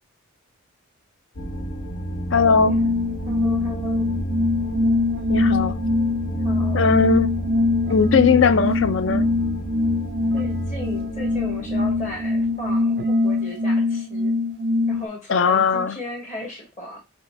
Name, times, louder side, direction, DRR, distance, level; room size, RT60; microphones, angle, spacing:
sound 1, 1.4-13.3, equal, 80° left, 1.1 m, -30 dB
voice 1, 2.3-2.8 5.3-5.7 6.7-7.3 7.9-9.3 15.3-16.0, left 5 dB, 55° left, 0.4 m, -18 dB
sound 2, 2.5-15.0, left 2 dB, 45° right, 0.3 m, -23 dB
voice 2, 3.3-4.1 6.2-7.0 10.3-14.4 14.9-17.0, left 1 dB, 35° left, 1.6 m, -36 dB
4.9 x 2.8 x 3.3 m
head